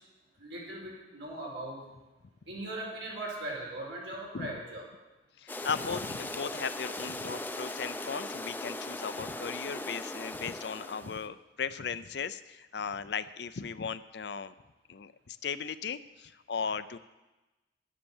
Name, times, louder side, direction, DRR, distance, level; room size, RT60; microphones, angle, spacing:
voice 1, 0.4-1.8 2.5-4.8, right 1 dB, 85° right, -3 dB, 4.7 m, -39 dB
voice 2, 5.4-14.5 14.9-17.0, left 6 dB, 65° left, 13 dB, 0.5 m, -37 dB
sound 1, 5.5-11.3, left 2 dB, 10° left, 0.5 m, -39 dB
11.0 x 10.0 x 7.2 m, 1.1 s
head